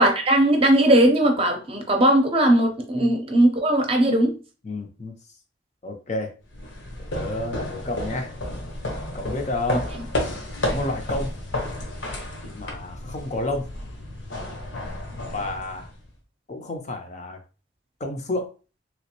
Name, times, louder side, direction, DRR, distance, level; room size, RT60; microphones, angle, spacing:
voice 1, 0.0-4.3, right 1 dB, 30° right, 4 dB, 0.7 m, -18 dB
voice 2, 4.6-5.1 5.8-6.3 7.0-8.3 9.1-10.0 10.6-11.4 12.5-13.7 15.3-15.9 16.5-17.4 18.0-18.5, left 2 dB, 40° left, 4 dB, 0.5 m, -30 dB
sound 1, 6.5-16.1, left 1 dB, 85° left, 1.1 m, -32 dB
3.1 x 3.0 x 2.9 m, 0.34 s
head